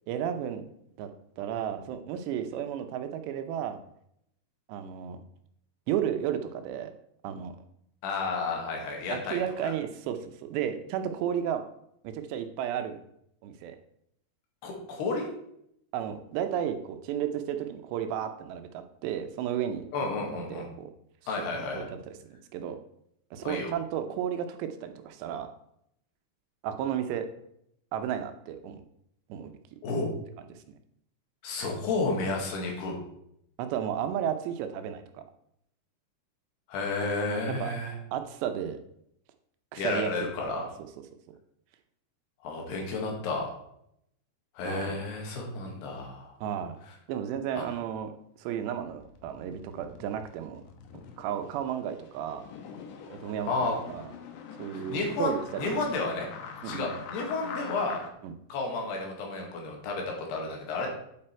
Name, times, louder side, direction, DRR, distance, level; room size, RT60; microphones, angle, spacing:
voice 1, 0.1-0.6 1.0-1.1 1.4-3.8 4.7-5.2 5.9-6.9 7.2-7.5 9.1-11.6 12.0-13.0 13.4-13.8 15.9-20.2 20.5-20.9 21.3-22.8 23.3-25.5 26.6-27.3 27.9-28.8 29.3-29.5 33.6-35.2 37.6-37.8 38.1-38.8 39.7-40.1 40.5-40.6 44.7-45.0 46.4-46.8 47.1-48.1 48.4-50.6 51.2-52.4 53.1-54.1 54.6-55.8 56.6-57.0 58.2-58.3, right 9 dB, 90° right, 7 dB, 3.1 m, -33 dB
voice 2, 8.0-9.4 14.6-15.3 19.9-20.7 21.3-21.9 23.4-23.7 29.8-30.1 31.4-33.0 36.7-37.9 39.8-40.6 42.4-43.5 44.6-46.3 47.6-47.7 53.5-53.8 54.7-55.3 55.6-56.3 56.6-58.0 58.5-60.9, left 3 dB, 75° left, 0 dB, 3.9 m, -31 dB
sound 1, 49.0-58.1, left 6 dB, 90° left, 3.3 m, -44 dB
8.5 x 7.7 x 4.5 m, 0.74 s
omnidirectional pair, 4.9 m